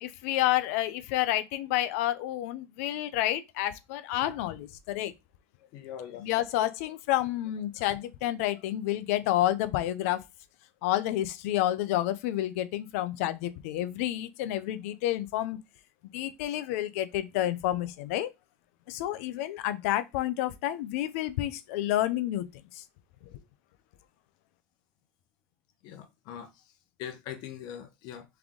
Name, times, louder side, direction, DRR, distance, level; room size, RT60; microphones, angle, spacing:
voice 1, 0.0-5.1 6.2-10.2 10.8-15.6 16.0-18.3 18.9-22.8, left 14 dB, 80° left, 0.5 m, -29 dB
voice 2, 5.7-6.2 25.8-26.5 27.0-28.2, left 9 dB, 65° left, 1.0 m, -41 dB
3.6 x 3.4 x 3.6 m
supercardioid pair, 100°, 8 cm